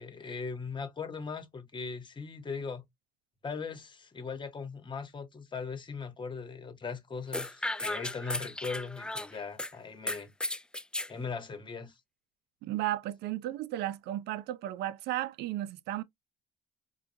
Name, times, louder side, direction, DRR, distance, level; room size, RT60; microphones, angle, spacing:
voice 1, 0.0-2.8 3.4-10.3 11.1-12.0, left 5 dB, 30° left, 1.1 m, -39 dB
sound 1, 7.3-9.7 10.1-11.1, left 1 dB, 5° left, 0.4 m, -35 dB
voice 2, 12.6-16.0, right 14 dB, 80° right, 0.5 m, -34 dB
4.6 x 2.3 x 2.6 m
cardioid pair, 110°, 17 cm